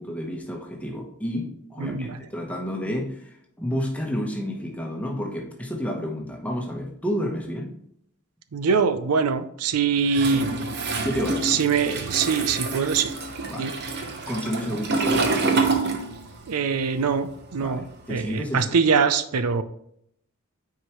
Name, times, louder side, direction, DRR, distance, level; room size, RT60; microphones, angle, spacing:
voice 1, 0.0-7.7 11.0-11.5 13.5-15.7 17.6-18.7 19.0-19.1, equal, 5° left, 1 dB, 1.1 m, -31 dB
voice 2, 1.8-2.2 8.5-10.5 11.4-13.1 13.6-13.7 16.5-19.6, right 5 dB, 85° right, 12 dB, 0.5 m, -23 dB
Toilet flush, 10.1-16.5 16.8-18.4, right 3 dB, 50° right, 0.9 m, -27 dB
9.2 x 4.7 x 3.1 m, 0.71 s
head